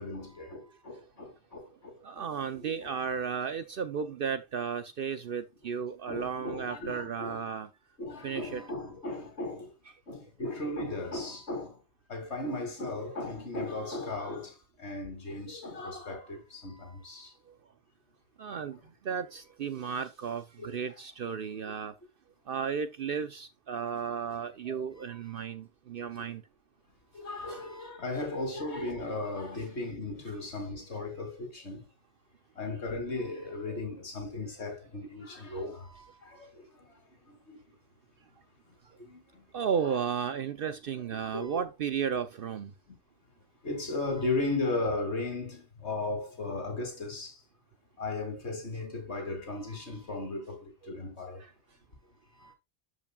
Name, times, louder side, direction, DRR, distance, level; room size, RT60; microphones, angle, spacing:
voice 1, 0.0-2.2 2.5-2.9 6.1-7.4 8.0-9.7 10.1-11.8 12.1-17.3 19.8-19.9 20.6-20.8 24.7-24.8 27.1-31.9 32.6-37.0 37.2-37.6 39.0-39.4 39.8-40.0 41.1-41.6 43.6-47.4 48.0-51.4 52.4-52.5, left 2 dB, 80° left, 2.5 m, -36 dB
voice 2, 2.0-7.7 8.2-8.6 18.4-18.8 19.1-21.9 22.5-26.4 27.5-27.6 29.5-29.6 33.7-33.8 39.5-42.7, right 7 dB, 60° right, 0.8 m, -34 dB
12.5 x 5.0 x 2.2 m
omnidirectional pair, 1.1 m